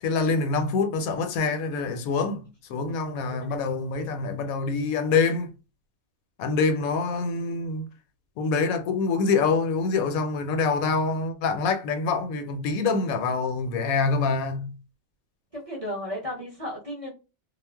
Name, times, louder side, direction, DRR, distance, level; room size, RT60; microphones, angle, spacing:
voice 1, 0.0-5.5 6.4-7.9 8.4-14.7, left 4 dB, 80° left, 1.0 m, -25 dB
voice 2, 15.5-17.1, left 1 dB, 35° right, 0.7 m, -34 dB
2.4 x 2.0 x 3.3 m
omnidirectional pair, 1.5 m